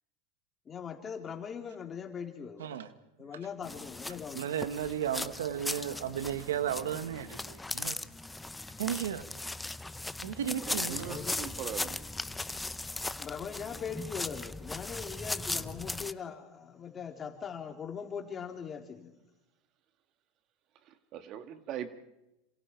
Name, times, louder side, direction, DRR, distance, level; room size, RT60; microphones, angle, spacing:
voice 1, 0.7-2.8 3.2-4.5 11.0-11.5 13.2-19.1, left 7 dB, 30° left, 3.6 m, -41 dB
sound 1, 3.6-16.1, left 2 dB, 10° left, 0.8 m, -38 dB
voice 2, 4.3-8.0 8.8-9.2 10.2-11.2, right 10 dB, 90° right, 1.5 m, -34 dB
voice 3, 10.6-12.1 20.9-21.9, right 10 dB, 50° right, 2.0 m, -41 dB
27.0 x 26.5 x 4.7 m
hypercardioid pair, 105°, 0 cm